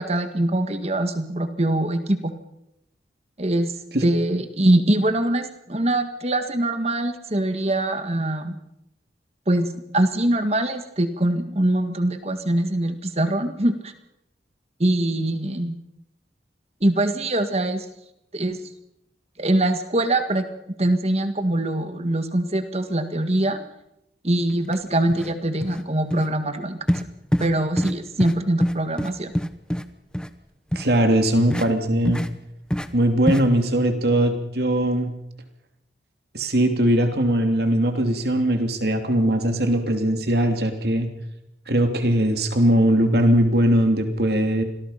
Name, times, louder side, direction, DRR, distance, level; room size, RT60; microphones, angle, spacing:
voice 1, 0.0-2.3 3.4-3.7 4.0-8.6 9.5-13.9 14.8-15.8 16.8-17.9 18.3-18.6 19.4-20.5 20.8-23.6 24.2-26.8 27.4-29.3, right 1 dB, 35° right, 9 dB, 1.8 m, -23 dB
sound 1, 24.7-24.8 25.1-25.3 25.6-25.8 26.1-26.3 26.9-27.0 27.3-27.5 27.8-27.9 28.2-28.3 28.6-29.8 30.1-30.3 30.7-30.9 31.5-31.7 32.0-32.3 32.7-32.9 33.3-33.4, equal, 5° left, 0.9 m, -24 dB
voice 2, 30.7-32.2 32.9-35.1 36.3-41.1 41.7-44.6, right 1 dB, 60° right, 6 dB, 3.0 m, -20 dB
26.0 x 19.0 x 5.8 m, 0.82 s
head